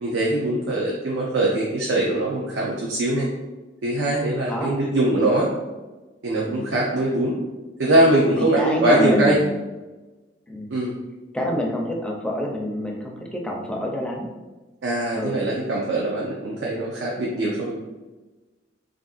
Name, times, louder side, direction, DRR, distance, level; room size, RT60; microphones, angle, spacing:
voice 1, 0.0-3.3 3.8-5.5 6.2-7.4 7.8-9.4 10.7-10.9 14.8-17.8, right 1 dB, 80° right, -3 dB, 0.5 m, -22 dB
voice 2, 6.4-6.8 8.4-9.5 10.5-10.7 11.3-14.3 15.2-15.4, equal, 5° left, -1 dB, 0.4 m, -27 dB
3.5 x 2.5 x 2.4 m, 1.2 s
head